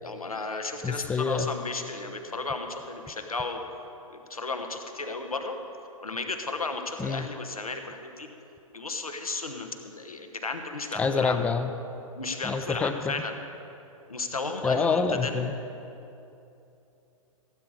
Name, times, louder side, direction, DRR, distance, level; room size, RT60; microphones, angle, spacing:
voice 1, 0.0-3.6 4.1-5.6 6.0-8.3 8.7-11.4 12.2-13.4 14.1-15.5, left 3 dB, 80° left, 5 dB, 1.2 m, -34 dB
voice 2, 0.8-1.5 7.0-7.3 11.0-11.7 12.4-13.1 14.6-15.5, left 5 dB, 5° left, 9 dB, 0.4 m, -27 dB
16.5 x 8.4 x 4.8 m, 2.8 s
figure-of-eight pair, 115°, 18 cm